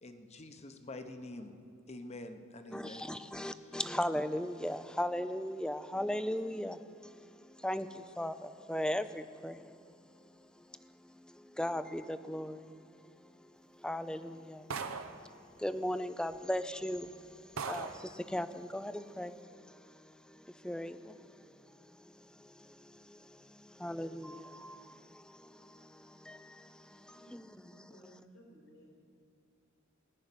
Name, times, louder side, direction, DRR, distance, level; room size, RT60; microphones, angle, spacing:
voice 1, 0.0-1.5 1.9-3.1 3.7-3.8, left 2 dB, 30° left, 7 dB, 0.9 m, -46 dB
voice 2, 2.7-28.0, left 1 dB, 5° left, 12 dB, 0.4 m, -39 dB
sound 1, 14.7-15.3 16.3-16.4 17.0-17.1 17.6-18.1, right 5 dB, 80° right, 0.8 m, -39 dB
voice 3, 27.1-29.0, equal, 85° left, -2 dB, 4.6 m, -59 dB
17.5 x 6.5 x 9.8 m, 2.5 s
head